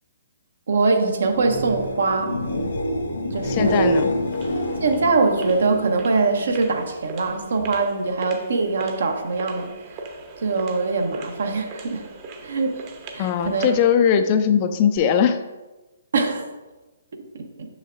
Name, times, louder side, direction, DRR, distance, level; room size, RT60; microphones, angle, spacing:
voice 1, 0.7-2.3 3.3-3.9 4.8-10.0 10.4-12.1 12.4-12.8 13.1-13.7 16.1-16.5 17.1-17.5, right 3 dB, 65° right, 5 dB, 0.9 m, -23 dB
sound 1, 1.2-7.0 7.3-7.9 15.0-15.1, equal, 70° left, 1.5 m, -27 dB
voice 2, 3.5-4.1 13.2-15.4, left 8 dB, 35° left, 8 dB, 0.5 m, -19 dB
sound 2, 3.7-13.9, right 3 dB, 35° right, 0.9 m, -40 dB
6.5 x 6.3 x 2.5 m, 1.1 s
figure-of-eight pair, 135°, 0 cm